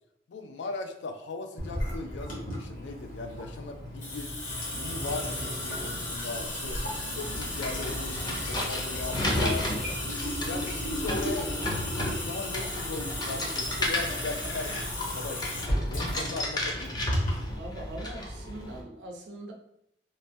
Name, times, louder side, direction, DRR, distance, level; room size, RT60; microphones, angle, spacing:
voice 1, 0.3-4.4 4.7-17.2, left 3 dB, 85° left, 6 dB, 0.4 m, -39 dB
Water tap faucet / Sink (filling or washing) / Drip, 1.6-17.5, left 1 dB, 50° left, 0.9 m, -34 dB
sound 1, 7.2-18.8, left 1 dB, 25° left, 0.5 m, -33 dB
voice 2, 17.5-19.5, right 1 dB, 75° right, 1 dB, 0.6 m, -41 dB
3.1 x 2.2 x 2.6 m, 0.75 s
head